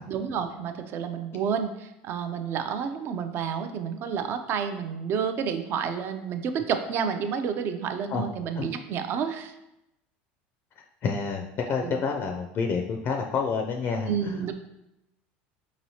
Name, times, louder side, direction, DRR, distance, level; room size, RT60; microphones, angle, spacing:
voice 1, 0.1-9.5 11.8-12.0 14.1-14.5, right 7 dB, 45° right, 8 dB, 0.4 m, -30 dB
voice 2, 11.0-14.4, left 5 dB, 40° left, 2 dB, 0.4 m, -28 dB
4.8 x 3.0 x 2.7 m, 0.88 s
supercardioid pair, 110°, 5 cm